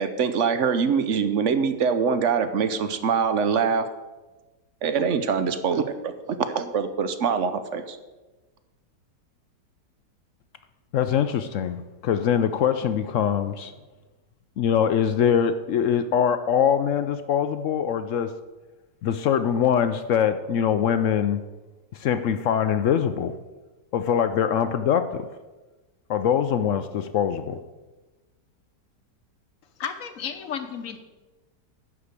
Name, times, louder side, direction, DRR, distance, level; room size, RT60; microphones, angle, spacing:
voice 1, 0.0-3.8 4.8-8.0, right 6 dB, 60° right, 10 dB, 0.9 m, -24 dB
voice 2, 10.9-13.7 14.6-18.3 19.0-21.4 21.9-23.3 23.9-25.3 26.1-27.6, left 8 dB, 75° left, 10 dB, 0.7 m, -23 dB
voice 3, 29.8-31.0, left 7 dB, 55° left, 8 dB, 1.2 m, -32 dB
11.0 x 4.9 x 8.1 m, 1.2 s
omnidirectional pair, 1.8 m